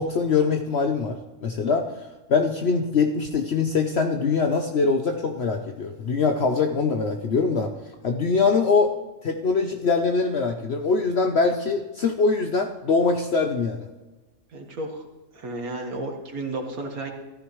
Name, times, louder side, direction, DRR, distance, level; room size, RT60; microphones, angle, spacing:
voice 1, 0.0-1.9 2.3-7.7 8.0-8.9 9.2-13.9, left 4 dB, 55° left, 4 dB, 1.0 m, -23 dB
voice 2, 14.5-15.0 15.3-17.1, right 2 dB, 85° right, 2 dB, 2.0 m, -32 dB
14.5 x 13.5 x 3.2 m, 1.2 s
omnidirectional pair, 1.5 m